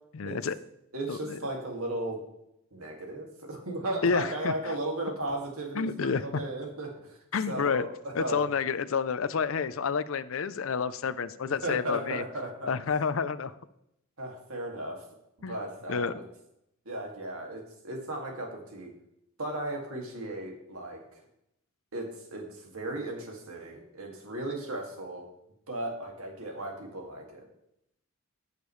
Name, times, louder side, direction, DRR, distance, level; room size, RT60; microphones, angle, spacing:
voice 1, 0.1-0.6 1.1-1.4 4.0-4.7 5.7-6.4 7.3-7.9 8.1-12.2 12.7-13.5 15.4-15.6 15.9-16.1, left 5 dB, 70° left, 15 dB, 0.5 m, -29 dB
voice 2, 0.9-2.2 2.7-7.2 7.5-8.5 11.6-12.7 14.2-15.0 15.5-16.2 16.9-18.9 19.4-21.0 21.9-25.2 25.7-27.5, right 1 dB, 85° right, 1 dB, 2.2 m, -36 dB
15.0 x 6.7 x 3.2 m, 0.80 s
head